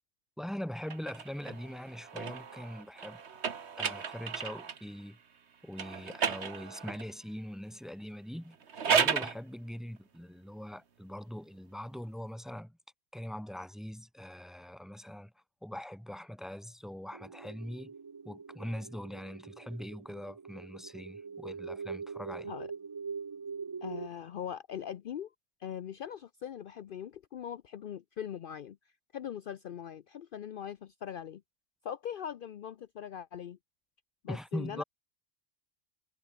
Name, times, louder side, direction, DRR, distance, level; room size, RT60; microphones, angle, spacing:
voice 1, 0.4-3.2 3.8-5.2 5.6-8.6 8.8-12.8 13.1-15.3 15.6-17.9 18.2-22.5 34.3-34.8, equal, ahead, 1.4 m, -42 dB
sound 1, 0.8-4.9 5.7-7.1 8.5-9.4, right 6 dB, 80° right, 1.6 m, -33 dB
sound 2, 17.1-24.1, right 5 dB, 35° right, 0.4 m, -43 dB
voice 2, 23.8-25.3 25.6-28.8 29.1-31.4 31.8-33.6 34.2-34.8, left 9 dB, 60° left, 0.7 m, -41 dB
omnidirectional pair, 1.1 m